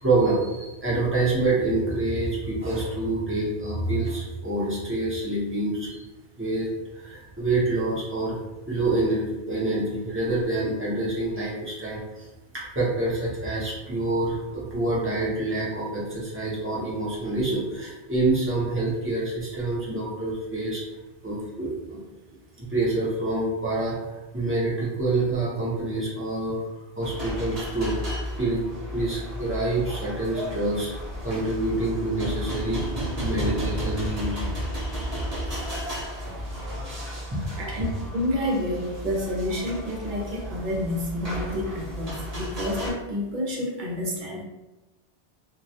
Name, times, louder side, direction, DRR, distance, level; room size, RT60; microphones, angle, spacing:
voice 1, 0.0-6.1 6.4-6.7 6.9-8.4 8.7-12.3 12.5-20.8 21.2-22.0 22.6-26.7 27.0-28.6 28.9-30.9 31.2-32.8 33.2-34.5 36.1-37.0 37.3-37.4, right 2 dB, 15° right, -7 dB, 0.5 m, -27 dB
sound 1, 27.0-42.9, equal, 40° right, 0.9 m, -33 dB
voice 2, 37.6-44.4, left 1 dB, 60° right, -2 dB, 0.6 m, -29 dB
2.2 x 2.1 x 2.7 m, 1.1 s
omnidirectional pair, 1.1 m